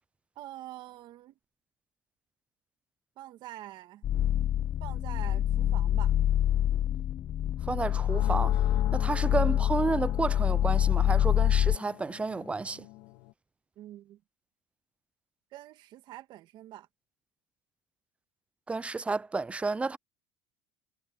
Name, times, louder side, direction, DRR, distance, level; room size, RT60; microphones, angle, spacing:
voice 1, 0.3-1.3 3.2-4.0 4.8-6.1 9.0-9.1 13.8-14.2 15.5-16.9, right 14 dB, 55° right, 1.7 m, -45 dB
sound 1, 4.0-11.8, left 11 dB, 40° left, 0.4 m, -26 dB
voice 2, 7.7-8.6 8.9-12.9 18.7-20.0, right 3 dB, 15° right, 0.5 m, -31 dB
sound 2, 7.8-13.3, left 20 dB, 75° left, 3.1 m, -44 dB
supercardioid pair, 120°, 9 cm